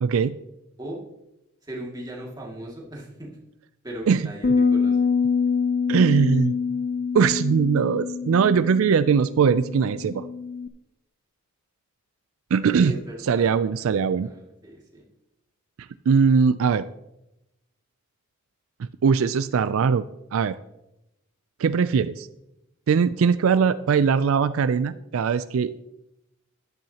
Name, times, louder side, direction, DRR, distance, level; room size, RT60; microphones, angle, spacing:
voice 1, 0.0-0.3 4.1-4.2 5.9-6.5 7.1-10.3 12.5-12.9 13.3-14.3 16.1-16.9 19.0-20.0 20.3-20.6 21.6-22.3 22.9-25.8, right 6 dB, 75° right, 13 dB, 0.4 m, -20 dB
voice 2, 1.6-3.4 3.8-5.1 12.7-13.9 14.2-15.0, right 1 dB, 20° right, -3 dB, 2.3 m, -38 dB
sound 1, 4.4-10.7, left 5 dB, 40° left, 0.5 m, -25 dB
13.5 x 10.5 x 2.9 m, 0.89 s
head